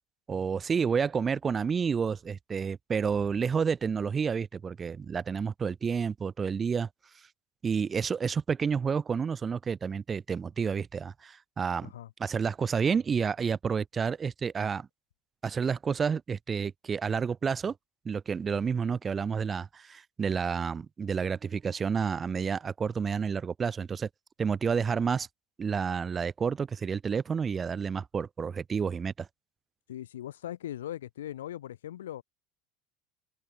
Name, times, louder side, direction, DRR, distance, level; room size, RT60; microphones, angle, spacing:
voice 1, 0.3-6.9 7.6-11.9 12.2-14.9 15.4-17.7 18.0-24.1 24.4-25.3 25.6-29.3, right 6 dB, 30° right, 1.3 m, -30 dB
voice 2, 29.9-32.2, left 12 dB, 80° left, 1.0 m, -39 dB
hypercardioid pair, 80°, 0 cm